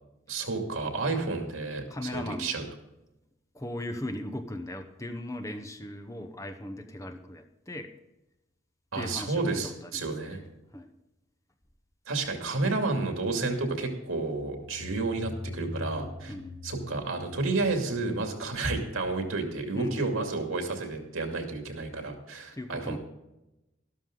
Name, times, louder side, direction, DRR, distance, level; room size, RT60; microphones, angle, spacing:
voice 1, 0.3-2.6 8.9-10.4 12.1-16.3 16.6-23.0, right 3 dB, 85° right, 4 dB, 2.4 m, -31 dB
voice 2, 1.0-1.4 1.9-2.6 3.5-7.9 8.9-10.5 10.7-10.9 16.3-16.6 19.7-20.1 22.5-23.0, left 1 dB, 15° left, 7 dB, 0.9 m, -38 dB
sound 1, 14.3-18.9, left 2 dB, 30° left, 1.4 m, -43 dB
12.5 x 12.5 x 3.8 m, 0.95 s
head